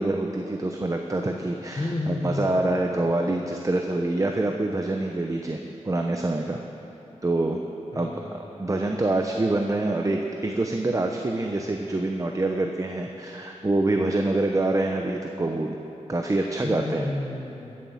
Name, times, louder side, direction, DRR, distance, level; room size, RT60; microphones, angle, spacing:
voice 1, 0.0-6.6 7.2-7.6 7.9-8.1 8.6-15.8 16.1-17.0, right 2 dB, 25° right, 2 dB, 0.8 m, -26 dB
voice 2, 1.8-3.1 7.9-9.0 16.6-17.8, left 2 dB, 35° left, -1 dB, 1.3 m, -32 dB
15.5 x 7.5 x 7.2 m, 2.9 s
wide cardioid pair, 80°, 12 cm